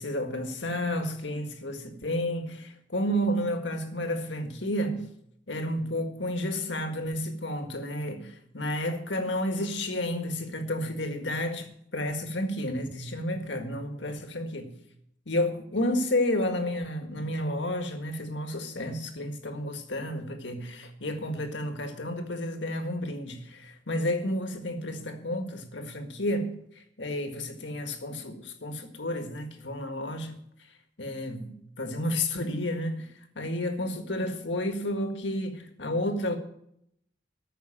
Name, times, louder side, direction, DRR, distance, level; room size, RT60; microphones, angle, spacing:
voice 1, 0.0-5.1 5.5-14.7 15.3-30.3 31.0-36.4, left 1 dB, 70° left, 1.7 m, -31 dB
14.0 x 5.8 x 8.8 m
head